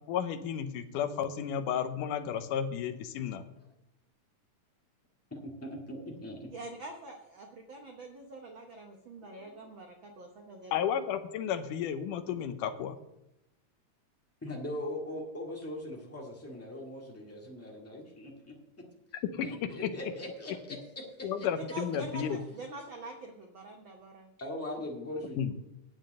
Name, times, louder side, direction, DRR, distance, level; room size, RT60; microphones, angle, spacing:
voice 1, 0.1-3.5 10.7-13.0 19.3-19.9 21.2-22.4 25.4-25.5, left 8 dB, 75° left, 9 dB, 2.2 m, -33 dB
voice 2, 5.3-6.5 9.2-9.7 14.4-18.5 19.4-20.8 21.2-21.5 24.4-25.5, left 1 dB, 5° left, -1 dB, 1.1 m, -40 dB
voice 3, 6.5-10.8 21.6-24.3, right 2 dB, 80° right, 3 dB, 1.1 m, -45 dB
9.2 x 7.3 x 7.6 m, 0.88 s
omnidirectional pair, 3.8 m